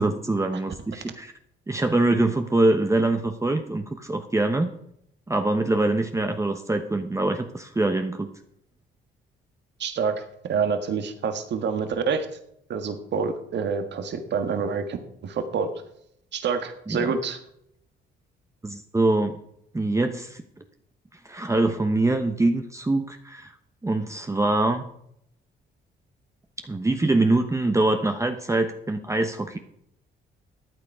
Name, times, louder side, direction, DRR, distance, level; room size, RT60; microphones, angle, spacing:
voice 1, 0.0-1.3 1.7-4.7 5.3-8.3 16.9-17.1 18.6-19.4 19.7-20.4 21.2-23.5 23.8-24.9 26.7-29.6, right 2 dB, 15° right, 6 dB, 1.0 m, -24 dB
voice 2, 9.8-12.3 12.7-15.0 15.2-15.7 16.3-17.4, right 5 dB, 60° right, 7 dB, 1.7 m, -27 dB
13.5 x 9.0 x 4.8 m, 0.73 s
cardioid pair, 90°, 20 cm